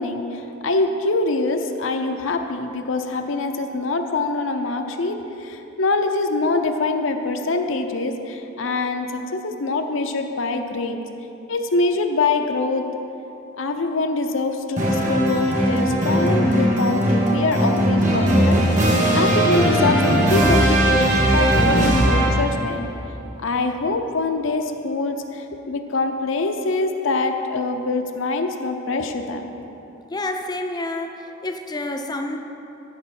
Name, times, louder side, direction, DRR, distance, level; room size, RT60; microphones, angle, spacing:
voice 1, 0.0-11.0 11.5-12.8 13.6-22.9 23.4-29.6, left 3 dB, 65° left, 5 dB, 0.6 m, -24 dB
sound 1, 14.8-22.6, right 1 dB, 40° right, 1.3 m, -18 dB
voice 2, 30.1-32.4, left 2 dB, 20° left, 4 dB, 0.6 m, -29 dB
13.0 x 5.5 x 4.4 m, 2.9 s
head